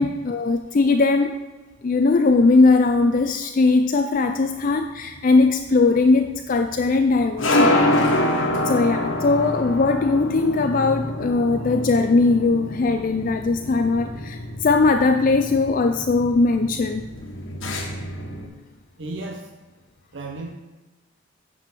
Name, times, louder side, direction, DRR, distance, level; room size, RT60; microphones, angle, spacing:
voice 1, 0.0-1.4 1.8-7.9 8.6-17.0, left 3 dB, 40° left, 6 dB, 0.4 m, -19 dB
sound 1, 4.4-18.5, left 1 dB, 75° left, 1.4 m, -26 dB
voice 2, 19.0-19.5 20.1-20.5, right 2 dB, 60° right, 2 dB, 0.8 m, -33 dB
9.0 x 5.0 x 6.0 m, 1.2 s
head